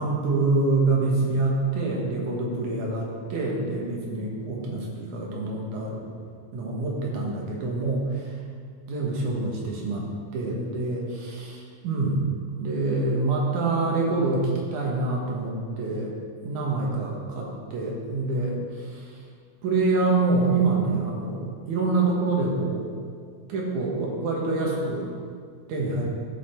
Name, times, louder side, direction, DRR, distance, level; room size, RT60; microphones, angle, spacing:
voice 1, 0.0-6.0 6.5-8.0 8.9-11.6 11.8-12.2 12.6-16.1 16.4-19.0 19.6-22.9 23.5-25.1 25.7-26.0, right 3 dB, 75° right, -2 dB, 2.9 m, -26 dB
12.5 x 5.6 x 4.5 m, 2.1 s
omnidirectional pair, 3.6 m